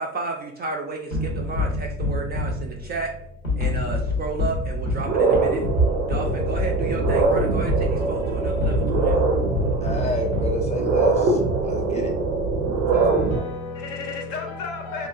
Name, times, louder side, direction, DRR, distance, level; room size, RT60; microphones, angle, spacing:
voice 1, 0.0-3.1 3.6-5.7 6.1-9.2, right 4 dB, 25° right, 0.4 m, -32 dB
sound 1, 1.1-11.0, left 3 dB, 90° left, 0.7 m, -28 dB
sound 2, 4.0-4.1 4.6-13.4, right 3 dB, 75° right, 0.6 m, -23 dB
voice 2, 9.8-12.2, equal, 15° left, 0.7 m, -29 dB
voice 3, 12.9-15.1, left 4 dB, 55° left, 0.6 m, -32 dB
2.9 x 2.3 x 2.3 m
figure-of-eight pair, 50°, 39 cm